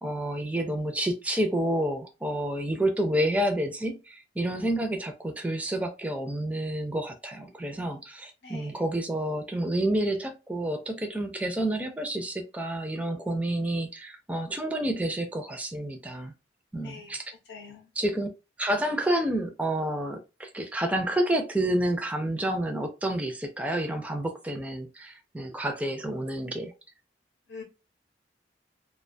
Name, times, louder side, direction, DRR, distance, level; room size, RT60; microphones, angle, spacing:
voice 1, 0.0-16.3 16.7-17.3 18.0-18.3 18.6-26.7, right 1 dB, 10° right, 0.4 m, -29 dB
voice 2, 8.4-8.8 16.8-17.2 17.5-17.9 27.5-27.6, left 5 dB, 75° left, 0.7 m, -44 dB
2.3 x 2.2 x 2.5 m
head